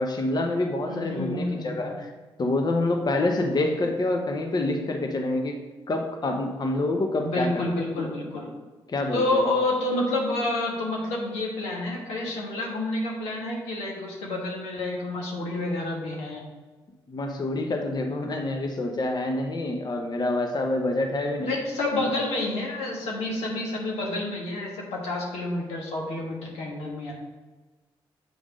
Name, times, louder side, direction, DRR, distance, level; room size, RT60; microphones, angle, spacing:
voice 1, 0.0-2.1 2.4-5.6 5.9-7.6 8.9-9.5 17.1-21.5 22.0-22.1, left 2 dB, 40° left, 3 dB, 0.8 m, -27 dB
voice 2, 0.9-1.9 7.2-8.5 9.1-16.4 21.4-27.1, left 2 dB, 90° left, -1 dB, 1.4 m, -29 dB
7.7 x 3.5 x 5.0 m, 1.3 s
supercardioid pair, 55°, 10 cm